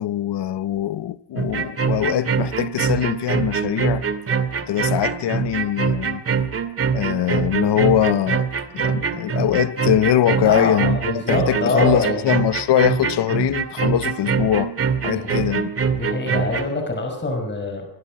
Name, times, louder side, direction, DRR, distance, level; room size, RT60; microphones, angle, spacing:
voice 1, 0.0-4.1 4.7-6.2 6.9-8.5 8.7-14.7 15.0-15.7, left 11 dB, 75° left, 1.1 m, -22 dB
sound 1, 1.4-16.7, right 6 dB, 35° right, 2.3 m, -23 dB
voice 2, 10.4-12.3 15.1-15.4 15.9-17.9, left 2 dB, 25° left, 5.4 m, -24 dB
25.5 x 22.5 x 6.2 m
wide cardioid pair, 175°, 41 cm